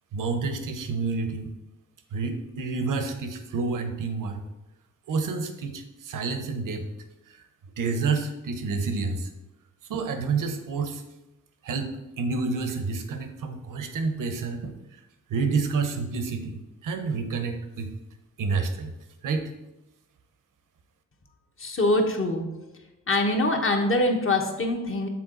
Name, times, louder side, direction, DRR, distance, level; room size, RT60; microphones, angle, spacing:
voice 1, 0.1-1.5 2.1-4.4 5.1-6.8 7.3-7.4 7.8-9.3 9.9-11.0 11.6-14.7 15.3-17.9 18.4-18.9 19.2-19.5, right 4 dB, 70° right, 7 dB, 0.9 m, -29 dB
voice 2, 21.6-22.4 23.1-25.1, left 2 dB, 40° left, 3 dB, 1.2 m, -24 dB
7.4 x 3.7 x 3.9 m, 0.96 s
cardioid pair, 60°, 33 cm